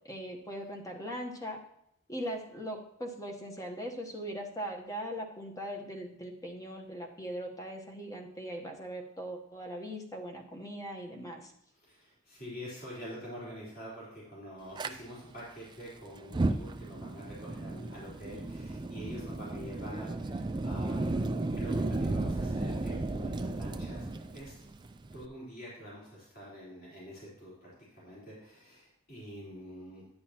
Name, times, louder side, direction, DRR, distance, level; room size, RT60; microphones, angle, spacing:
voice 1, 0.0-1.6 2.1-11.5, equal, 15° left, 2 dB, 1.0 m, -40 dB
voice 2, 11.7-24.5 25.1-30.2, equal, 45° left, -7 dB, 3.9 m, -46 dB
Fire, 14.8-14.9 16.2-25.2, right 2 dB, 20° right, 0.4 m, -34 dB
10.0 x 9.4 x 2.9 m, 0.77 s
head